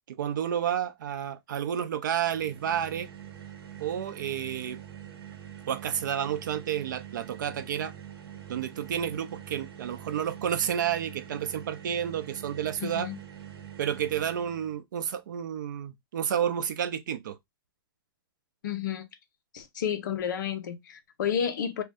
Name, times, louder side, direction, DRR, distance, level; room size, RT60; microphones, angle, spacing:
voice 1, 0.1-3.1 3.8-4.8 5.7-7.9 8.5-13.1 13.8-17.4, right 9 dB, 50° right, 0.4 m, -30 dB
sound 1, 2.2-14.8, right 10 dB, 80° right, 0.9 m, -45 dB
voice 2, 12.8-13.2 18.6-19.0 19.5-21.8, left 8 dB, 50° left, 0.6 m, -31 dB
2.5 x 2.2 x 3.4 m
hypercardioid pair, 175°, 13 cm